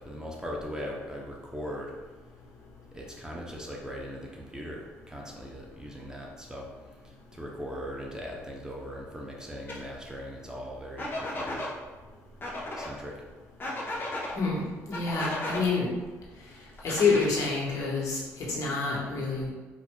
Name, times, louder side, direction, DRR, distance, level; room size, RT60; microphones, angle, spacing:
voice 1, 0.0-1.9 2.9-6.7 7.0-11.7 12.8-13.2, equal, 10° right, -2 dB, 0.6 m, -39 dB
sound 1, 9.7-9.8 11.0-11.7 12.4-12.9 13.6-14.3 14.9-15.6 16.8-17.6, left 1 dB, 35° left, 0.8 m, -34 dB
voice 2, 14.9-15.9 16.8-19.5, left 4 dB, 60° left, -4 dB, 1.2 m, -27 dB
4.6 x 2.5 x 2.2 m, 1.3 s
supercardioid pair, 80°, 6 cm